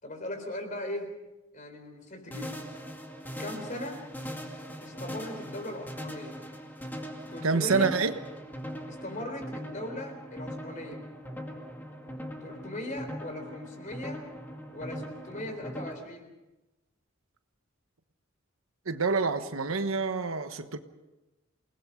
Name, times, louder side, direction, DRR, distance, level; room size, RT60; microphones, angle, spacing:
voice 1, 0.0-1.1 1.5-2.6 3.4-4.0 4.8-6.4 7.3-8.0 8.9-11.0 12.4-14.2 14.7-16.3, left 1 dB, 40° left, 6 dB, 3.8 m, -39 dB
sound 1, 2.3-15.9, equal, 10° left, 2.1 m, -41 dB
voice 2, 7.4-8.1 18.9-20.8, right 4 dB, 85° right, 9 dB, 1.3 m, -27 dB
28.5 x 19.5 x 5.2 m, 1.0 s
head